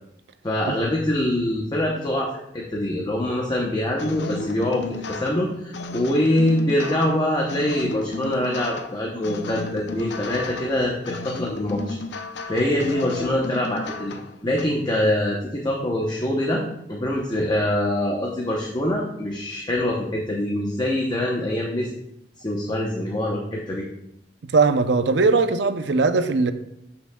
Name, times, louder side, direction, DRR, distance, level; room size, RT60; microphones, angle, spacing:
voice 1, 0.4-12.0 12.5-14.1 14.4-16.6 16.9-21.9 22.4-23.8, left 1 dB, 25° left, -2 dB, 0.8 m, -24 dB
sound 1, 4.0-14.6, left 3 dB, 65° left, 0.6 m, -34 dB
voice 2, 24.5-26.5, right 4 dB, 70° right, 10 dB, 0.5 m, -19 dB
12.5 x 5.7 x 2.3 m, 0.80 s
head